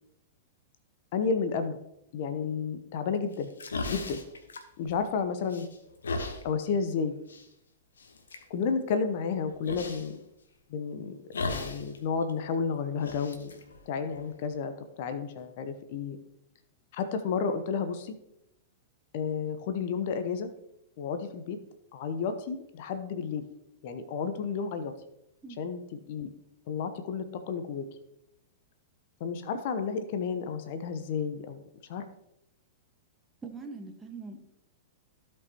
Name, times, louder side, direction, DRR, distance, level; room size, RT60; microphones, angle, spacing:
voice 1, 1.1-1.8 2.1-3.5 3.9-4.2 4.8-5.7 6.4-7.2 8.5-10.2 10.7-13.5 13.9-14.7 15.0-16.2 16.9-18.2 19.1-20.5 21.0-21.6 21.9-23.4 23.8-24.9 25.6-25.8 26.1-26.3 26.7-27.8 29.2-31.6 31.9-32.0, left 5 dB, 50° left, 9 dB, 0.8 m, -31 dB
sound 1, 3.3-5.2 5.5-6.4 7.3-7.5 8.0-8.4 9.6-10.1 11.3-12.0 12.2-12.3 13.0-14.5, left 3 dB, 70° left, 1.1 m, -36 dB
voice 2, 33.4-34.4, right 4 dB, 15° right, 3 dB, 1.3 m, -42 dB
15.5 x 5.4 x 2.9 m, 0.82 s
figure-of-eight pair, 100°, 0 cm